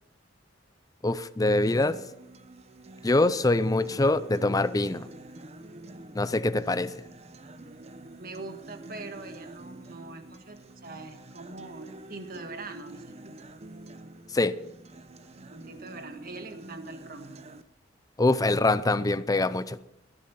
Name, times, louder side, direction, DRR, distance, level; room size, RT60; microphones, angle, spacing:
voice 1, 1.0-2.0 3.0-5.1 6.1-7.0 14.3-14.6 18.2-19.8, left 2 dB, 20° left, 14 dB, 0.5 m, -24 dB
Acoustic guitar, 1.6-17.6, right 2 dB, 35° right, 0.8 m, -47 dB
voice 2, 8.2-13.3 15.5-17.5, right 3 dB, 50° right, 6 dB, 1.7 m, -43 dB
18.5 x 10.5 x 5.6 m, 0.86 s
head